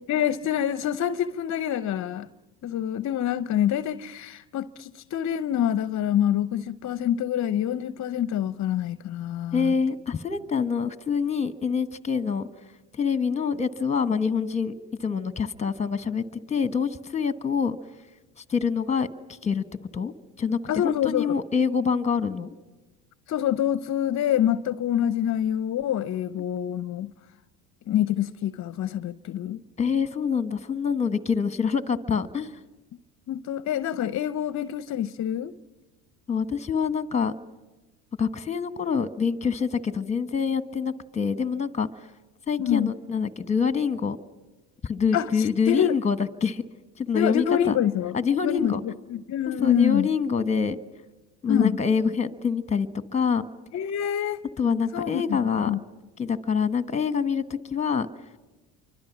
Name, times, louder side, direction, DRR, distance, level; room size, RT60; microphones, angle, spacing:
voice 1, 0.1-2.3 2.6-9.7 20.7-21.4 23.3-27.1 27.9-29.6 33.3-35.5 42.6-42.9 45.1-46.0 47.1-48.1 48.4-50.1 51.5-51.7 53.7-54.4 54.9-55.8, left 10 dB, 40° left, 0.8 m, -26 dB
voice 2, 9.5-12.5 12.9-14.7 15.0-17.8 18.4-19.6 19.9-20.6 20.8-22.5 29.8-32.5 36.3-37.3 38.2-42.1 42.5-44.2 44.8-46.6 47.0-47.8 48.1-48.8 49.6-50.8 51.4-52.9 53.1-53.4 54.6-55.7 56.2-57.4 57.7-58.1, left 6 dB, 15° left, 1.2 m, -26 dB
28.5 x 24.5 x 6.0 m
hypercardioid pair, 75°, 44 cm